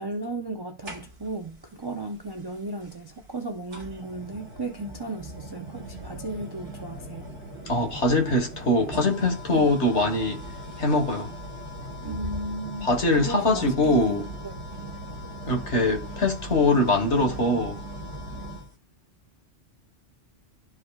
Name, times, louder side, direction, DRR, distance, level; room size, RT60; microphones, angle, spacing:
voice 1, 0.0-7.3 9.5-9.7 12.0-14.7, right 2 dB, 30° right, 0.5 m, -35 dB
sound 1, 0.8-1.5 2.8-2.9 3.7-18.7, equal, 65° right, 2.0 m, -39 dB
voice 2, 7.7-10.4 10.8-11.3 12.8-14.2 15.5-17.8, left 2 dB, 80° left, 1.8 m, -23 dB
13.0 x 4.9 x 2.4 m
omnidirectional pair, 1.2 m